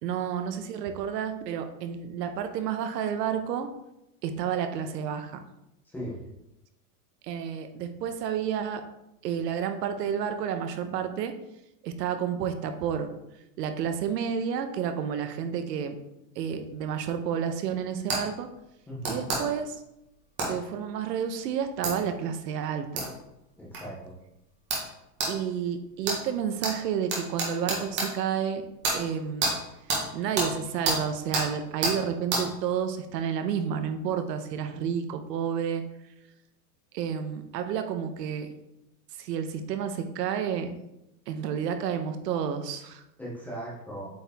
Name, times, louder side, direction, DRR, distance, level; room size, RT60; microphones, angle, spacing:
voice 1, 0.0-3.7 4.2-5.4 7.2-8.9 9.2-11.3 11.8-13.1 13.6-16.0 16.4-18.5 19.0-19.8 20.4-23.0 25.3-28.7 28.9-29.5 30.1-35.8 36.9-38.5 39.2-40.7 41.3-43.0, right 8 dB, 85° right, 8 dB, 1.0 m, -30 dB
sound 1, 18.1-18.2 19.0-19.4 20.4-20.5 21.8-21.9 23.0-23.1 23.7-23.8 24.7-24.9 25.2-25.3 26.0-26.2 26.6-26.7 27.1-28.1 28.8-29.0 29.4-29.5 29.9-30.0 30.4-30.5 30.8-31.0 31.3-31.5 31.8-32.0 32.3-32.4, right 3 dB, 20° right, 1.4 m, -27 dB
voice 2, 18.9-19.3 23.6-24.1 43.2-44.1, right 1 dB, 5° left, -5 dB, 0.6 m, -38 dB
8.1 x 4.6 x 3.5 m, 0.87 s
supercardioid pair, 180°, 48 cm